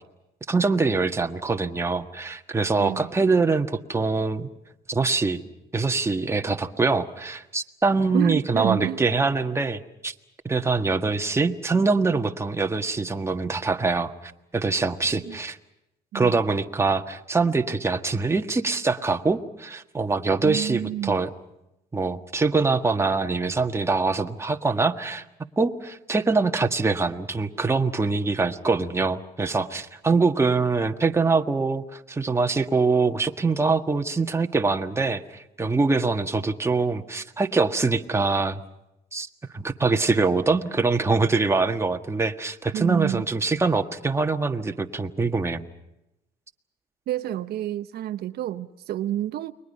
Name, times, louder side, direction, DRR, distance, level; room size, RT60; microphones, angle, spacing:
voice 1, 0.5-4.5 4.9-5.4 5.7-10.1 10.4-14.1 14.5-15.6 16.1-21.3 21.9-25.2 25.6-38.6 39.1-39.3 39.5-45.6, right 3 dB, 15° right, 5 dB, 1.6 m, -24 dB
voice 2, 2.8-3.1 8.1-9.0 15.2-15.4 16.1-16.4 20.4-21.2 42.7-43.3 47.1-49.5, right 12 dB, 70° right, 10 dB, 0.9 m, -29 dB
30.0 x 22.5 x 5.6 m, 0.87 s
cardioid pair, 110°, 17 cm